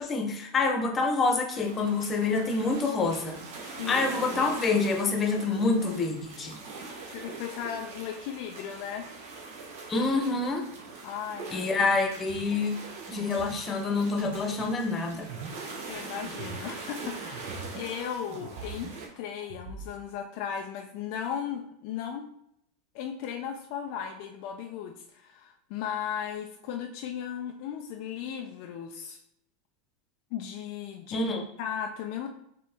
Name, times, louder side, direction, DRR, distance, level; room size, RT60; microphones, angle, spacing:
voice 1, 0.0-6.6 9.9-10.6 11.5-12.7 13.1-15.3 31.1-31.4, left 3 dB, 25° left, 3 dB, 0.9 m, -27 dB
sound 1, 1.5-19.1, right 3 dB, 75° right, 1.1 m, -42 dB
voice 2, 3.8-4.4 7.1-9.1 11.0-11.7 15.9-18.9 19.2-22.2 22.9-29.2 30.3-31.2 31.6-32.3, left 8 dB, 60° left, 4 dB, 0.4 m, -36 dB
Wobble Loop II, 12.3-18.0 18.3-19.9, right 5 dB, 50° right, 0.6 m, -43 dB
4.3 x 3.0 x 3.4 m, 0.73 s
supercardioid pair, 120°, 0 cm